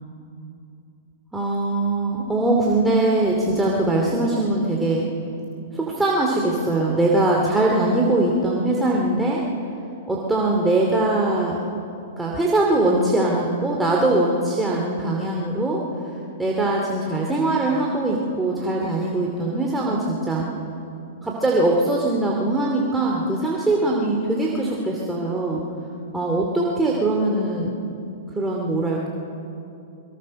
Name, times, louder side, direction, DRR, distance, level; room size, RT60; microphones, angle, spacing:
voice 1, 1.3-5.0 5.7-9.4 10.1-11.6 12.2-15.8 16.4-20.5 21.2-25.6 26.1-27.7 28.3-29.1, right 2 dB, 5° right, -2 dB, 2.7 m, -21 dB
23.0 x 22.5 x 6.5 m, 2.7 s
hypercardioid pair, 130°, 0 cm